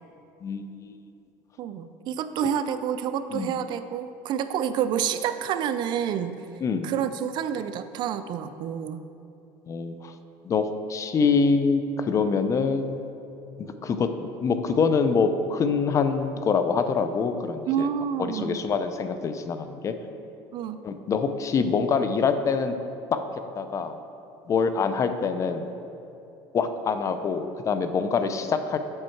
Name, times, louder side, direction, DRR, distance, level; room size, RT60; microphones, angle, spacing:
voice 1, 0.4-1.0 3.3-3.5 6.6-6.9 9.7-10.1 10.4-13.0 13.6-14.1 14.4-17.9 18.2-19.9 20.8-22.7 23.1-23.2 23.6-24.0 24.5-25.7 26.5-28.8, left 5 dB, 30° left, 9 dB, 0.5 m, -25 dB
voice 2, 1.6-6.4 6.8-9.0 17.7-18.6 20.5-20.8, right 8 dB, 50° right, 11 dB, 0.4 m, -28 dB
7.7 x 5.5 x 4.5 m, 2.8 s
cardioid pair, 125°, 10 cm